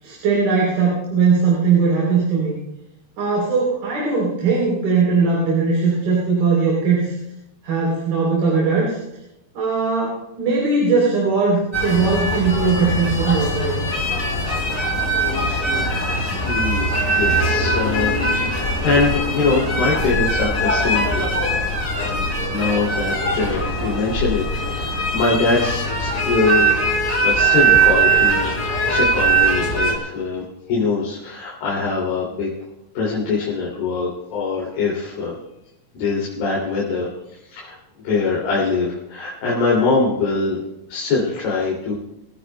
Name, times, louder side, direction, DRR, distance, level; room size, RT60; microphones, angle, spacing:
voice 1, 0.0-2.6 3.2-7.2 7.6-9.0 9.6-13.8, right 4 dB, 65° right, -4 dB, 5.2 m, -19 dB
sound 1, 11.7-30.0, right 2 dB, 20° left, 2.9 m, -21 dB
voice 2, 16.5-21.3 21.9-24.4 24.7-26.7 27.2-28.5 28.9-32.5 32.9-35.4 35.9-37.1 37.5-37.8 38.0-40.6 40.9-41.9, left 4 dB, 65° left, -6 dB, 4.4 m, -23 dB
27.0 x 15.5 x 2.2 m, 0.89 s
omnidirectional pair, 4.6 m